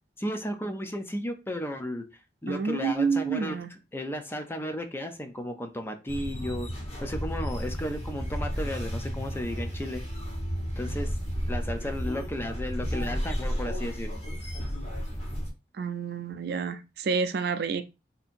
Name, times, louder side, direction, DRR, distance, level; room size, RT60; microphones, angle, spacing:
voice 1, 0.2-2.0 2.4-6.7 7.0-10.0 10.8-11.1 11.5-14.2, equal, 15° left, 0.5 m, -34 dB
voice 2, 2.5-3.7 15.8-17.8, right 5 dB, 60° right, 0.4 m, -29 dB
sound 1, 6.1-15.5, equal, 35° left, 1.3 m, -32 dB
2.7 x 2.7 x 4.2 m
head